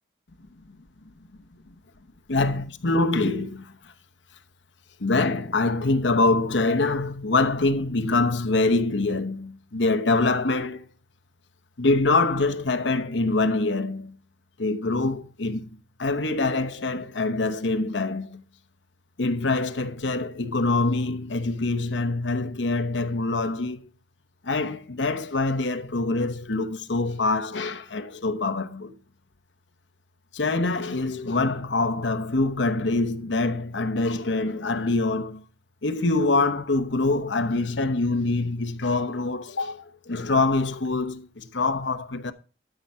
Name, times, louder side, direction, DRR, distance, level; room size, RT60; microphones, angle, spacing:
voice 1, 2.3-3.9 5.0-10.9 11.8-14.2 14.6-18.4 19.2-23.9 24.4-29.0 30.3-35.4 35.8-42.3, left 3 dB, 85° left, 1.0 m, -25 dB
13.0 x 4.7 x 5.5 m
head